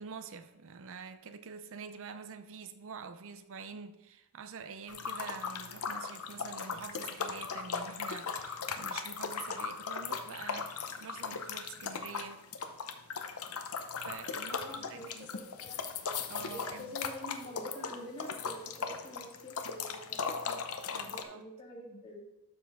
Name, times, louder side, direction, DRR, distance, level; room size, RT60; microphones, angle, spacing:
voice 1, 0.0-12.5 14.0-15.3 16.3-17.0 20.9-21.5, right 5 dB, 65° right, 0.5 m, -46 dB
sound 1, 4.9-21.2, left 5 dB, 75° left, 0.8 m, -38 dB
voice 2, 14.5-15.8 16.3-20.6 21.1-22.2, left 1 dB, 25° left, 2.0 m, -47 dB
12.5 x 4.5 x 3.6 m
head